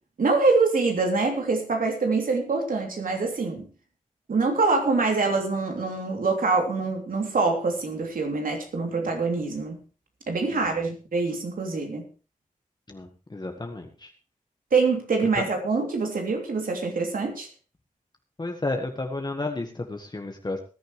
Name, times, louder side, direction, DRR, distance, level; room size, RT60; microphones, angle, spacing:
voice 1, 0.2-3.7 4.3-9.8 10.3-12.1 14.7-17.5, right 4 dB, 90° right, 2 dB, 3.0 m, -25 dB
voice 2, 10.5-10.9 12.9-14.1 15.3-15.4 18.4-20.6, left 2 dB, 30° left, 3 dB, 1.4 m, -32 dB
19.5 x 10.5 x 3.2 m, 0.35 s
wide cardioid pair, 95°, 14 cm